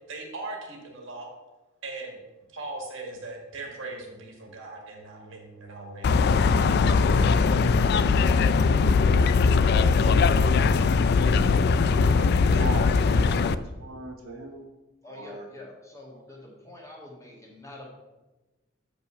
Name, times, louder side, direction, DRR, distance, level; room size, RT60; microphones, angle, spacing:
voice 1, 0.1-1.3 1.8-2.2 2.5-6.3, right 2 dB, 65° right, 2 dB, 1.8 m, -39 dB
sound 1, 3.4-12.2, equal, 5° right, 1.3 m, -45 dB
sound 2, 6.0-13.5, left 4 dB, 50° left, 0.3 m, -20 dB
voice 2, 12.0-14.6 15.1-15.5, right 2 dB, 80° right, 2 dB, 1.2 m, -38 dB
voice 3, 15.0-17.9, left 2 dB, 15° left, -2 dB, 1.7 m, -46 dB
7.1 x 5.3 x 5.6 m, 1.1 s
head